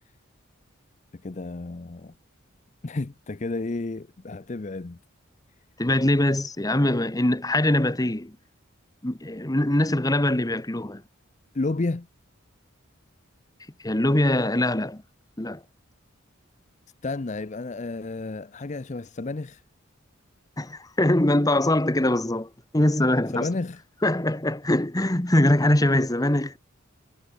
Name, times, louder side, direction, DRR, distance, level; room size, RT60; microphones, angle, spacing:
voice 1, 1.1-2.1 2.8-5.0 11.5-12.1 17.0-19.6 23.3-23.8, left 3 dB, 35° left, 0.6 m, -31 dB
voice 2, 5.8-8.4 9.0-11.0 13.8-15.0 15.4-15.6 20.6-23.5 24.0-26.6, left 1 dB, 20° left, 1.2 m, -22 dB
head